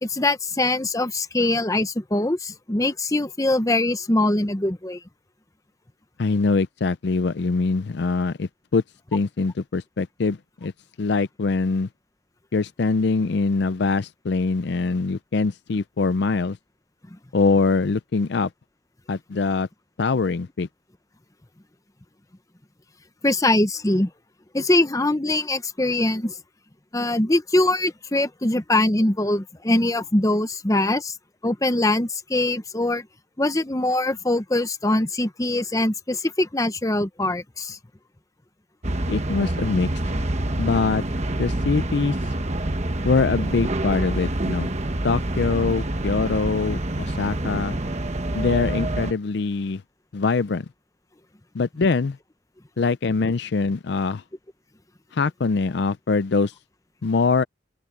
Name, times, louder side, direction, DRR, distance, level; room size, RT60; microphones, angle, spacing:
voice 1, 0.0-5.0 23.2-24.1 24.5-26.3 26.9-31.1 31.4-33.1 33.4-37.8, left 2 dB, 15° left, 0.8 m, -22 dB
voice 2, 6.2-8.8 9.1-10.7 11.0-11.9 12.5-16.6 17.3-18.5 19.1-19.7 20.0-20.7 39.1-39.9 40.6-42.2 43.0-44.7 45.0-47.8 48.3-49.8 50.1-50.7 51.5-52.2 52.8-54.2 55.1-56.5 57.0-57.4, left 4 dB, 55° left, 0.5 m, -23 dB
sound 1, 38.8-49.1, right 1 dB, 35° right, 1.2 m, -26 dB
open air
head